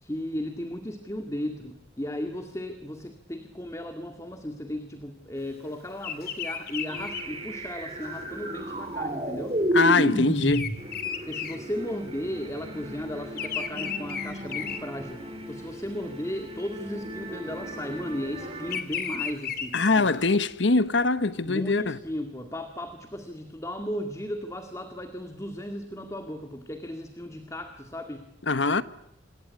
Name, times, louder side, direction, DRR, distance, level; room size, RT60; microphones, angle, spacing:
voice 1, 0.0-9.6 11.2-20.1 21.4-28.3, left 1 dB, 15° left, 2.0 m, -35 dB
Bird vocalization bird call bird song, 6.0-12.4 12.7-15.6 16.0-16.4 17.4-20.3, left 7 dB, 55° left, 2.5 m, -35 dB
sound 1, 6.9-18.8, equal, 30° right, 4.3 m, -33 dB
voice 2, 9.7-10.7 19.7-22.0 28.5-28.8, left 3 dB, 80° left, 1.1 m, -23 dB
26.5 x 20.5 x 9.5 m
head